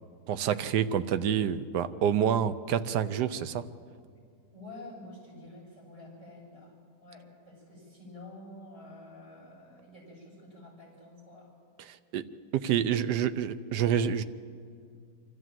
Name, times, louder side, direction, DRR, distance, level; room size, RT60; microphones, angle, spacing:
voice 1, 0.3-3.7 11.8-12.2 12.5-14.2, right 9 dB, 85° right, 13 dB, 1.3 m, -28 dB
voice 2, 4.5-6.7 7.0-11.5, left 2 dB, 50° right, -3 dB, 8.0 m, -48 dB
24.5 x 14.0 x 7.6 m, 2.2 s
omnidirectional pair, 1.7 m